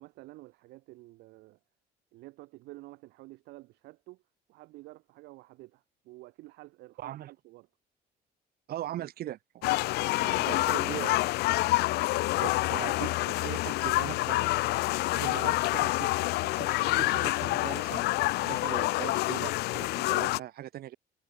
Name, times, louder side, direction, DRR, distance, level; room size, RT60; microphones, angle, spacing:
voice 1, 0.0-1.6 2.1-4.2 4.5-7.7 8.9-9.1, right 20 dB, 85° right, 0.8 m, -50 dB
voice 2, 7.0-7.3 8.7-9.7 10.2-11.3 12.4-14.5 15.1-18.1 18.4-21.0, right 13 dB, 65° right, 1.8 m, -40 dB
sound 1, 9.6-20.4, left 19 dB, 75° left, 0.4 m, -27 dB
cardioid pair, 110°, 17 cm